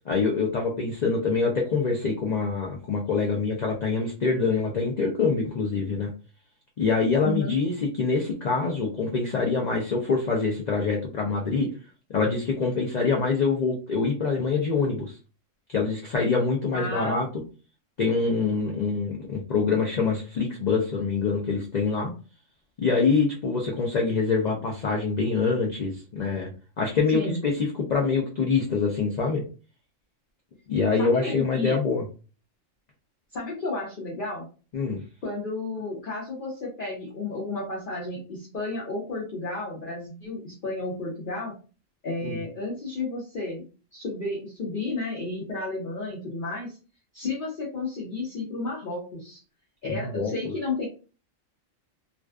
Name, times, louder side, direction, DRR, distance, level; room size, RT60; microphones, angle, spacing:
voice 1, 0.1-6.1 6.8-7.7 8.0-11.7 12.1-15.1 15.7-17.3 18.0-22.1 22.8-26.5 26.8-27.5 27.9-29.4 30.7-32.0 34.7-35.0 42.2-42.4 49.9-50.3, left 4 dB, 80° left, 0 dB, 0.3 m, -25 dB
voice 2, 7.2-7.6 16.7-17.2 18.7-18.8 27.1-27.4 31.0-31.8 33.3-34.5 35.2-41.6 42.0-43.6 43.9-46.8 47.1-49.4 49.8-50.9, left 3 dB, 50° left, -4 dB, 0.7 m, -32 dB
2.5 x 2.2 x 2.3 m, 0.35 s
omnidirectional pair, 1.3 m